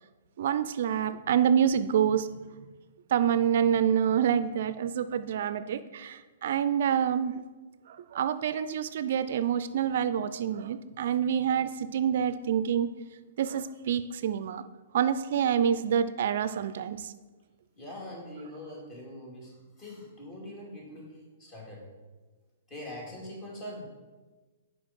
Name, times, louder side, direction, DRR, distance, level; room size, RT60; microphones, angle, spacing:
voice 1, 0.4-2.3 3.1-7.4 7.9-12.9 13.4-14.6 14.9-17.1, right 8 dB, 60° right, 13 dB, 0.3 m, -27 dB
voice 2, 17.8-21.9 22.7-23.9, left 1 dB, 30° left, -2 dB, 2.4 m, -43 dB
6.0 x 4.8 x 5.2 m, 1.3 s
hypercardioid pair, 125°, 0 cm